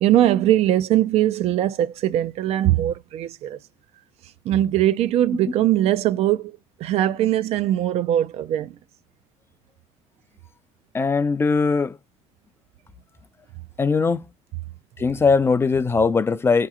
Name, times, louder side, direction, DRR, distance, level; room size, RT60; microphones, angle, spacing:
voice 1, 0.0-3.6 4.5-8.7, right 12 dB, 55° right, 0.4 m, -21 dB
voice 2, 10.9-12.0 13.8-14.3 15.0-16.7, left 4 dB, 20° left, 0.4 m, -20 dB
4.0 x 2.9 x 3.7 m
cardioid pair, 125°, 12 cm